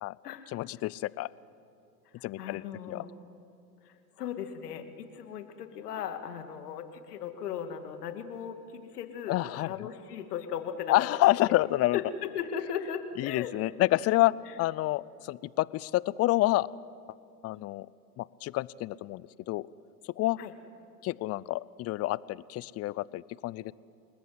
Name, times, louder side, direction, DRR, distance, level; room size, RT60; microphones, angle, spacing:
voice 1, 0.5-1.3 2.2-3.0 9.3-9.7 10.9-12.0 13.2-16.7 17.4-17.9 18.2-19.7 20.0-20.4 21.0-23.7, left 17 dB, 30° left, 21 dB, 0.6 m, -28 dB
voice 2, 2.2-3.1 3.8-10.9 11.5-11.6 11.9-13.5 20.4-20.5, left 8 dB, 75° left, 7 dB, 2.4 m, -37 dB
29.5 x 20.0 x 8.0 m, 2.6 s
hypercardioid pair, 95°, 47 cm